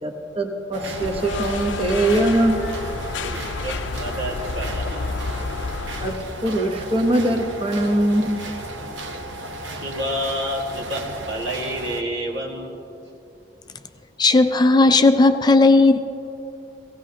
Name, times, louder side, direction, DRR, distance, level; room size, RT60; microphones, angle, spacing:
voice 1, 0.0-2.6 6.0-6.1 6.4-8.4, right 1 dB, 30° right, 3 dB, 1.1 m, -21 dB
sound 1, 0.7-12.0, right 1 dB, 90° right, 1.0 m, -34 dB
sound 2, 0.9-6.1, left 3 dB, 90° left, 0.6 m, -30 dB
voice 2, 3.2-5.2 9.7-12.7, equal, 70° right, -1 dB, 1.9 m, -29 dB
voice 3, 14.2-16.0, left 3 dB, 25° left, 8 dB, 0.4 m, -15 dB
18.0 x 15.5 x 2.8 m, 2.9 s
head